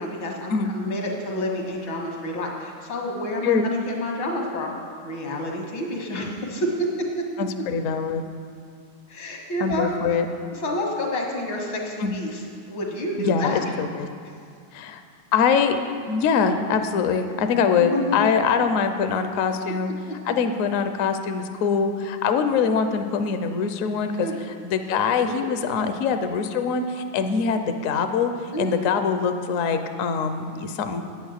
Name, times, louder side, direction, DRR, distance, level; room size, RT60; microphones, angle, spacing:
voice 1, 0.0-4.7 5.0-6.9 9.1-9.9 10.5-13.6 17.7-18.3 24.2-24.4 28.5-28.8, left 1 dB, 85° left, 0 dB, 2.3 m, -29 dB
voice 2, 7.4-8.2 9.6-10.3 12.0-12.2 13.2-14.1 14.7-15.0 15.3-15.8 16.1-19.9 20.3-24.3 24.6-31.0, left 6 dB, 65° left, 7 dB, 0.8 m, -23 dB
9.2 x 8.5 x 6.5 m, 2.3 s
omnidirectional pair, 2.1 m